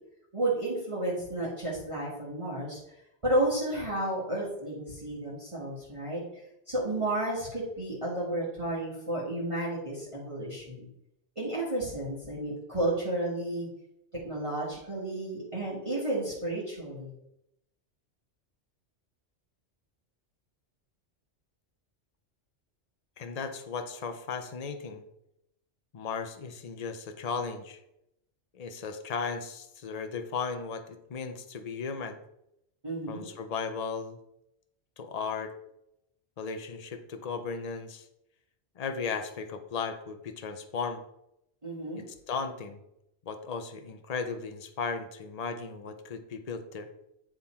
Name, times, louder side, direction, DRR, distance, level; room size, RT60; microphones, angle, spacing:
voice 1, 0.3-2.8 3.2-6.2 6.7-10.9 11.3-13.7 14.2-17.1 32.8-33.3 41.6-42.0, right 1 dB, 25° right, -7 dB, 1.6 m, -32 dB
voice 2, 23.2-25.0 25.9-27.8 28.5-32.2 33.1-34.2 35.0-35.5 36.4-38.1 38.8-41.0 42.0-42.8 43.3-46.9, left 5 dB, 40° left, 7 dB, 0.6 m, -36 dB
8.9 x 3.7 x 4.3 m, 0.82 s
omnidirectional pair, 1.2 m